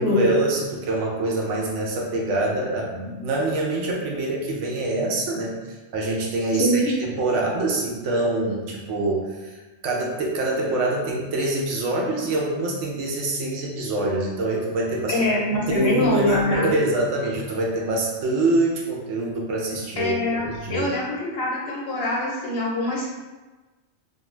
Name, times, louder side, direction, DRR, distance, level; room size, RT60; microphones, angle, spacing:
voice 1, 0.0-15.2 15.5-20.1 20.5-20.9, right 2 dB, 75° right, -2 dB, 0.9 m, -25 dB
voice 2, 6.6-6.9 15.1-16.7 20.0-23.1, left 1 dB, 60° left, -4 dB, 0.8 m, -24 dB
2.4 x 2.3 x 3.0 m, 1.2 s
omnidirectional pair, 1.3 m